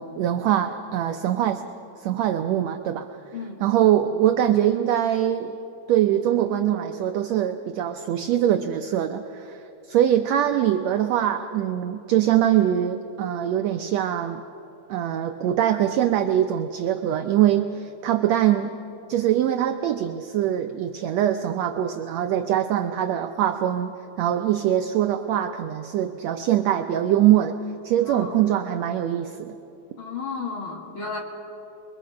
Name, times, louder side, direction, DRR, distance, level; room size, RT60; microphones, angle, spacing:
voice 1, 0.0-1.6 2.0-3.1 3.6-5.6 5.9-14.4 14.9-18.8 19.1-23.9 24.2-27.6 27.8-29.6, right 11 dB, 85° right, 7 dB, 1.5 m, -23 dB
voice 2, 3.3-3.7 28.0-28.4 30.0-31.2, left 4 dB, 45° left, 1 dB, 2.3 m, -33 dB
28.5 x 22.5 x 5.2 m, 2.8 s
omnidirectional pair, 3.9 m